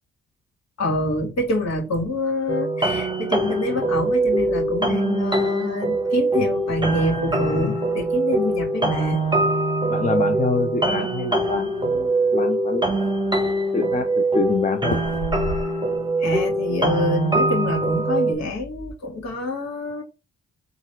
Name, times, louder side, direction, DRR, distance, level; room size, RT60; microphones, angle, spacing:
voice 1, 0.8-9.2 16.2-20.0, left 1 dB, 60° left, 1.8 m, -26 dB
sound 1, 2.5-18.3, right 2 dB, 15° right, 0.9 m, -23 dB
voice 2, 9.9-12.9 13.7-15.0, left 4 dB, 25° left, 0.8 m, -26 dB
sound 2, 11.0-11.9 12.3-12.4 12.7-13.4 14.8-16.1 16.4-16.9, left 1 dB, 90° left, 0.9 m, -32 dB
4.0 x 2.5 x 4.5 m
supercardioid pair, 55°, 30 cm